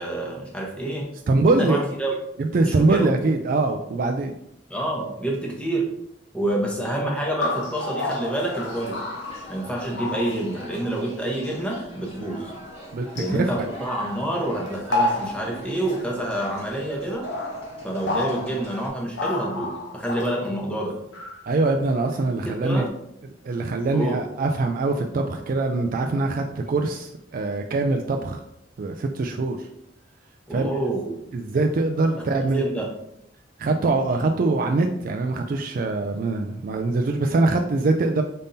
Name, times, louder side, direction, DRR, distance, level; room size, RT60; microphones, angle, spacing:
voice 1, 0.0-1.1 1.6-2.1 2.6-3.1 4.7-5.9 6.3-9.0 9.5-12.5 13.2-17.3 17.8-21.0 22.6-22.9 23.9-24.2 30.5-31.2 32.5-32.9, right 1 dB, 5° left, -2 dB, 0.9 m, -27 dB
voice 2, 1.3-1.8 2.4-4.3 12.9-13.6 21.5-22.9 23.4-28.4 28.8-29.7 30.5-30.9 31.3-32.7 33.6-38.2, right 3 dB, 50° right, 4 dB, 0.3 m, -23 dB
sound 1, 7.4-9.7 9.9-10.6 13.2-13.4 14.7-16.0 16.9-18.8 19.2-20.5 21.1-21.5 22.1-22.2, left 2 dB, 80° left, 0.8 m, -30 dB
sound 2, 8.3-18.9, equal, 35° left, 1.3 m, -41 dB
5.3 x 3.6 x 2.7 m, 0.77 s
head